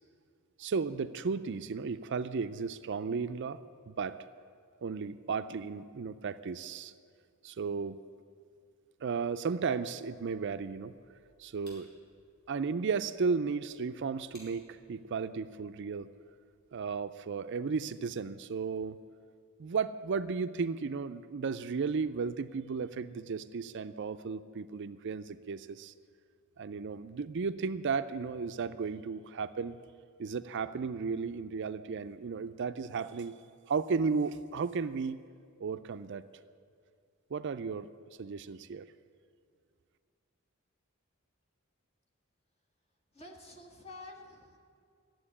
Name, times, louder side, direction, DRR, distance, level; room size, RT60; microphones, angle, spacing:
voice 1, 0.6-3.6 3.9-4.2 4.8-6.9 7.4-8.0 9.0-10.9 11.4-11.9 12.5-16.1 16.7-19.0 19.6-25.9 26.6-29.8 30.2-33.4 33.7-35.2 35.6-36.2 37.3-37.9 38.2-38.9, right 5 dB, 60° right, 12 dB, 0.4 m, -34 dB
sound 1, 10.1-16.9, equal, 50° left, 5.0 m, -64 dB
voice 2, 43.1-44.6, left 2 dB, 30° left, 2 dB, 1.8 m, -49 dB
14.0 x 7.8 x 9.8 m, 2.2 s
head